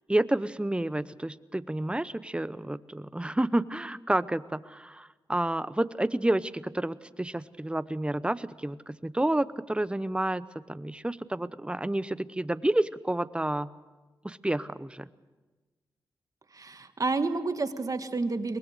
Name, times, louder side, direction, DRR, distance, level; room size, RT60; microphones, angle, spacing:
voice 1, 0.1-13.7 14.2-15.1, right 1 dB, 15° right, 17 dB, 0.8 m, -30 dB
voice 2, 16.5-18.6, right 3 dB, 45° right, 9 dB, 1.7 m, -30 dB
23.0 x 20.0 x 6.6 m, 1.2 s
cardioid pair, 45°, 8 cm